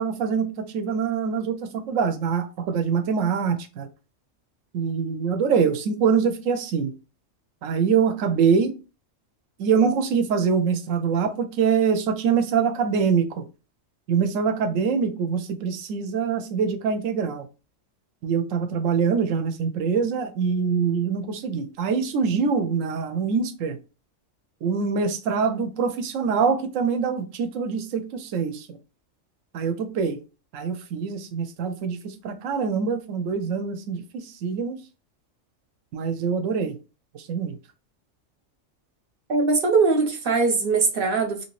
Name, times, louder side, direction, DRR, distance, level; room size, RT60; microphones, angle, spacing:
voice 1, 0.0-3.9 4.7-6.9 7.6-8.7 9.6-13.4 14.1-17.4 18.2-23.8 24.6-28.8 29.5-30.2 30.5-34.8 35.9-36.8 37.1-37.6, right 6 dB, 80° right, 1.0 m, -24 dB
voice 2, 39.3-41.4, right 4 dB, 55° right, 0.8 m, -21 dB
2.9 x 2.8 x 2.9 m
omnidirectional pair, 1.3 m